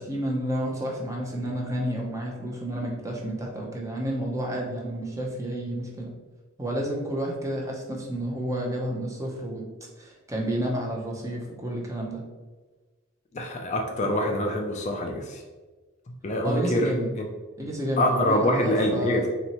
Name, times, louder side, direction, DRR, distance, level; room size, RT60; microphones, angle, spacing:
voice 1, 0.0-6.1 6.6-9.7 10.0-12.2 16.4-17.1 17.6-19.3, right 1 dB, 15° right, -2 dB, 0.7 m, -30 dB
voice 2, 13.3-15.4 16.2-16.9 17.2-17.3 18.0-19.3, left 1 dB, 35° left, 2 dB, 0.4 m, -25 dB
4.3 x 3.1 x 2.9 m, 1.3 s
head